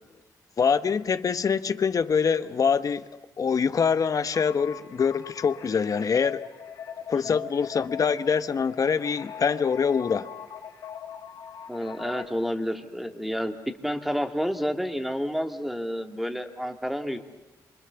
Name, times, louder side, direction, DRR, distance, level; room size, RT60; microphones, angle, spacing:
voice 1, 0.6-3.0 3.4-6.4 7.1-10.3, left 6 dB, 50° left, 12 dB, 1.1 m, -24 dB
sound 1, 4.3-12.2, left 8 dB, 75° left, 2.5 m, -41 dB
voice 2, 7.1-7.5 11.7-13.5 13.8-17.2, equal, ahead, 5 dB, 2.2 m, -30 dB
27.5 x 25.0 x 7.0 m, 1.2 s
cardioid pair, 90°, 7 cm